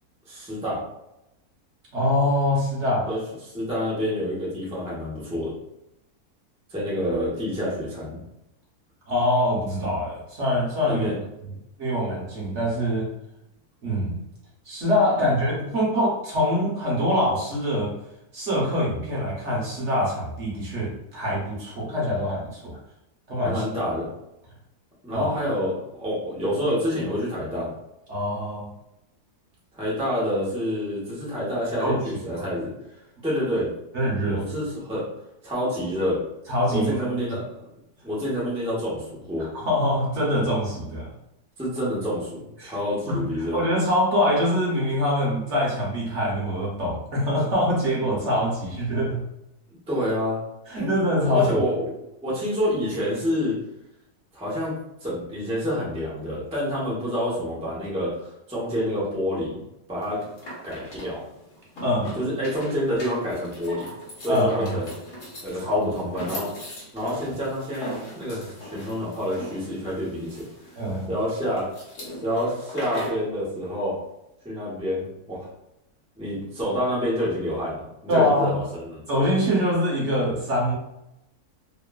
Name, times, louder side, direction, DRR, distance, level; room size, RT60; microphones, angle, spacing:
voice 1, 0.3-0.8 3.0-5.5 6.7-8.2 10.8-11.1 23.4-24.1 25.0-27.7 29.7-32.7 33.2-33.7 34.3-35.0 35.4-36.2 36.7-37.5 38.0-39.5 41.6-43.6 49.9-50.4 50.8-50.9 51.2-53.6 54.3-59.6 59.9-60.2 60.6-61.2 62.2-63.9 64.2-64.9 65.4-66.5 66.9-70.4 70.7-70.8 71.1-71.7 72.2-74.0 74.4-75.5 76.2-79.0, equal, 10° right, -7 dB, 0.4 m, -28 dB
voice 2, 1.9-3.1 9.1-11.1 11.8-13.1 13.8-14.2 14.7-17.9 18.3-22.8 23.3-23.6 25.1-25.4 28.1-28.7 31.8-32.0 32.4-32.5 33.9-34.5 36.5-37.1 39.4-41.1 42.6-42.7 43.1-49.2 50.7-51.6 61.8-62.2 64.3-64.8 65.6-65.9 70.8-71.1 78.1-78.5 79.1-80.7, left 1 dB, 55° right, -5 dB, 1.0 m, -24 dB
sound 1, 60.0-73.3, equal, 60° left, 1.2 m, -39 dB
2.9 x 2.1 x 2.2 m, 0.87 s
omnidirectional pair, 1.6 m